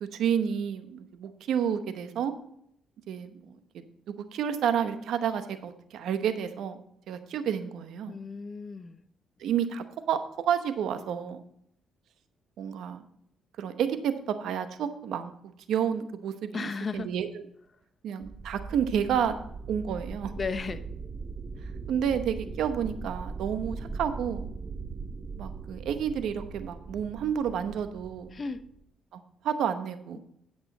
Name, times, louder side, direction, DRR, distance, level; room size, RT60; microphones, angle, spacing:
voice 1, 0.0-2.3 3.1-3.4 3.7-6.8 7.1-8.2 9.4-10.2 10.5-11.4 12.6-13.0 13.6-15.3 15.7-17.3 18.0-19.3 19.7-20.3 21.9-24.5 25.4-28.3 29.1-30.2, right 8 dB, 80° right, 9 dB, 0.9 m, -30 dB
voice 2, 8.1-9.0 16.5-17.1 20.4-20.8 28.3-28.7, left 4 dB, 35° left, 12 dB, 0.7 m, -34 dB
sound 1, 18.2-28.8, right 4 dB, 40° right, 1.0 m, -40 dB
9.7 x 8.1 x 4.1 m, 0.71 s
cardioid pair, 90°, 0 cm